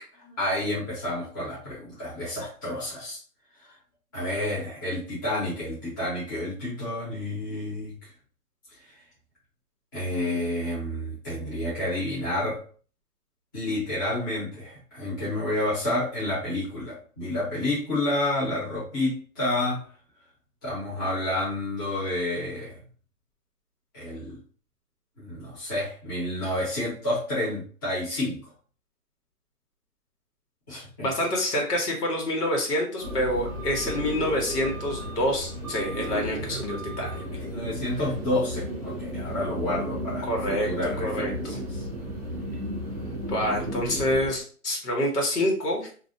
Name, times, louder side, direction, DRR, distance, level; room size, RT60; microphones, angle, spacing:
voice 1, 0.4-3.2 3.6-3.7 4.1-7.9 9.9-12.6 13.5-19.8 20.6-22.8 23.9-24.4 25.2-28.4 30.7-31.1 37.5-41.8, left 1 dB, 15° left, -10 dB, 0.8 m, -29 dB
voice 2, 31.0-37.2 40.2-40.7 41.0-41.6 43.3-45.8, left 1 dB, 85° left, 0 dB, 1.2 m, -27 dB
sound 1, 33.0-44.3, equal, 25° right, 0.5 m, -34 dB
2.5 x 2.2 x 2.6 m, 0.42 s
hypercardioid pair, 165°, 46 cm